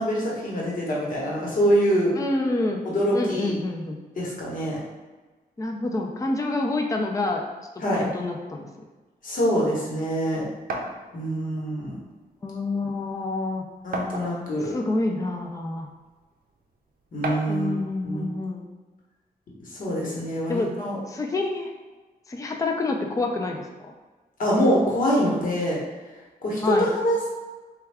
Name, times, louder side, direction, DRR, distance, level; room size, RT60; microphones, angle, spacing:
voice 1, 0.0-2.1 2.8-3.5 4.2-4.8 7.8-8.0 9.2-10.4 11.1-12.0 13.8-14.7 17.1-17.7 18.0-18.3 19.7-21.0 24.4-25.8 26.4-27.3, equal, 55° left, -4 dB, 1.1 m, -24 dB
voice 2, 2.2-2.8 3.1-4.0 5.6-7.4 7.9-8.7 12.4-13.6 14.6-15.9 17.5-18.7 20.5-20.7 21.1-21.7 22.3-23.6 26.6-26.9, left 2 dB, 20° left, 2 dB, 0.4 m, -27 dB
sound 1, 10.7-11.0 12.1-12.2 12.6-12.7 13.9-14.6 15.4-15.5 17.2-17.6, right 2 dB, 65° right, 0.5 m, -31 dB
3.4 x 2.3 x 3.4 m, 1.3 s
wide cardioid pair, 110°, 16 cm